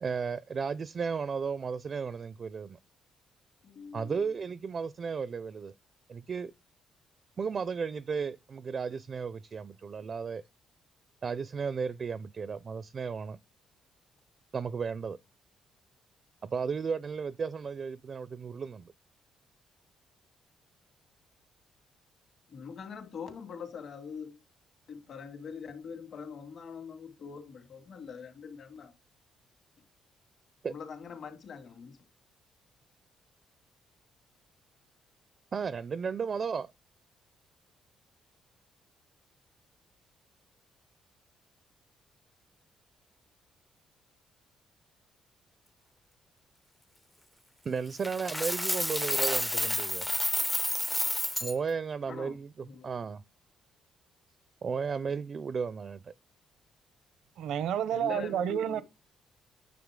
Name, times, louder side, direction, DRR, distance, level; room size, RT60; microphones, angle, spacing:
voice 1, 0.0-2.8 3.9-5.7 6.1-6.5 7.4-10.4 11.2-13.4 14.5-15.2 16.4-18.9 30.6-30.7 35.5-36.7 47.6-50.1 51.4-53.2 54.6-56.1, right 5 dB, 45° right, 0.5 m, -34 dB
voice 2, 3.6-4.2 22.5-24.4 24.9-28.9 30.6-32.0 52.1-52.4 52.6-53.0 57.9-58.8, left 6 dB, 60° left, 2.7 m, -43 dB
Coin (dropping), 48.0-51.5, left 1 dB, 5° left, 0.5 m, -30 dB
voice 3, 57.4-58.8, right 9 dB, 80° right, 0.8 m, -30 dB
9.4 x 6.8 x 3.8 m
cardioid pair, 90°, 0 cm